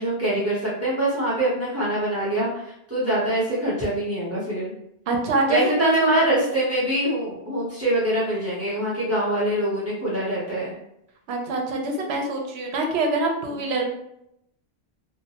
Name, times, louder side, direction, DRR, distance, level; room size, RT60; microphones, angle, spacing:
voice 1, 0.0-4.7 5.5-10.7 13.5-13.6, right 1 dB, 15° right, -8 dB, 0.8 m, -24 dB
voice 2, 5.1-6.1 11.3-13.8, right 3 dB, 85° right, 1 dB, 0.9 m, -25 dB
2.6 x 2.1 x 2.8 m, 0.80 s
omnidirectional pair, 1.1 m